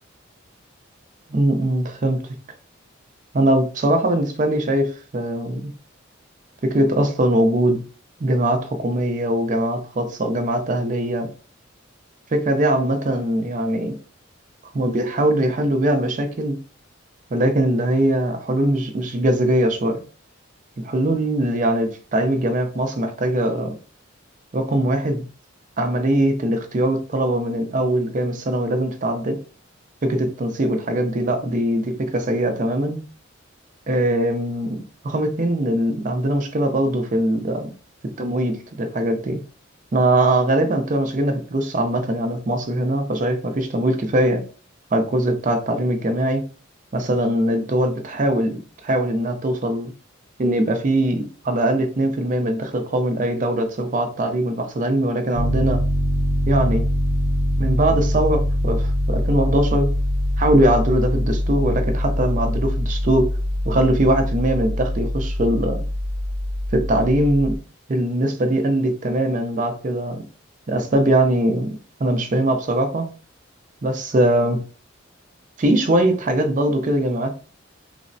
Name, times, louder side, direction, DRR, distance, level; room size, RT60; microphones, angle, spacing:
voice 1, 1.3-2.2 3.3-5.7 6.6-7.8 8.2-11.3 12.3-14.0 14.7-16.6 17.3-20.0 20.8-23.7 24.5-25.2 25.8-29.4 30.0-33.0 33.9-37.7 38.2-39.4 39.9-44.4 44.9-46.4 46.9-49.9 50.4-55.8 56.5-56.8 57.6-59.9 60.4-63.3 63.7-65.8 66.7-67.6 67.9-70.2 70.7-73.1 73.8-74.6 75.6-77.4, right 1 dB, 40° right, 0.4 m, -21 dB
Piano, 55.3-67.6, equal, 80° right, 0.8 m, -23 dB
3.2 x 2.0 x 2.5 m
head